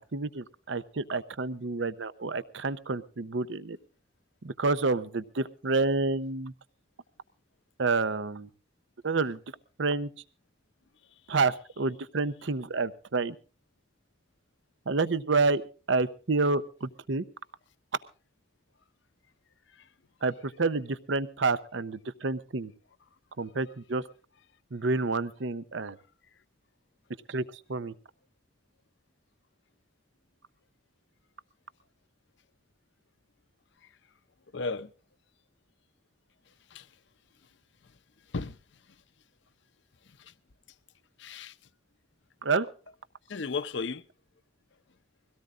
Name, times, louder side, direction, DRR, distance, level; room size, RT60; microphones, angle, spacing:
voice 1, 0.1-3.8 4.4-6.5 7.8-8.5 9.0-9.4 9.8-10.1 11.3-13.3 14.9-15.6 15.9-17.2 20.2-22.7 23.4-24.0 24.7-26.0 27.3-27.4 27.7-27.9 42.4-42.7, right 3 dB, 70° right, 0.7 m, -29 dB
voice 2, 34.5-34.9 36.7-36.9 38.3-38.6 40.2-40.3 41.2-41.6 43.3-44.0, left 4 dB, 65° left, 0.7 m, -34 dB
22.5 x 17.0 x 2.5 m
head